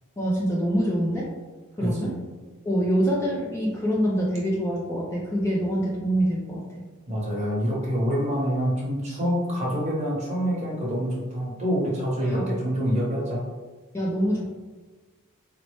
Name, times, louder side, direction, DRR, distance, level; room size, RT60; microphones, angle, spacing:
voice 1, 0.2-1.3 1.8-2.1 2.6-6.8 12.2-12.5 13.9-14.5, equal, 10° left, -5 dB, 0.4 m, -25 dB
voice 2, 1.8-2.2 7.1-13.5, equal, 30° right, -5 dB, 1.0 m, -26 dB
4.0 x 2.1 x 3.0 m, 1.3 s
head